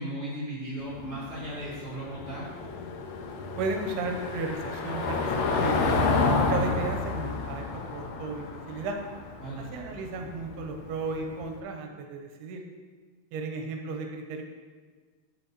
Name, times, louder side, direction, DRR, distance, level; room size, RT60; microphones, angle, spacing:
voice 1, 0.0-2.5 9.4-9.7, right 1 dB, 30° left, -11 dB, 1.6 m, -36 dB
Car passing by / Engine, 0.8-11.4, left 3 dB, 85° left, 2.7 m, -30 dB
voice 2, 3.6-9.0 9.6-12.6 13.3-14.4, right 3 dB, 85° right, 4 dB, 2.6 m, -34 dB
10.5 x 6.2 x 2.8 m, 1.5 s
omnidirectional pair, 4.7 m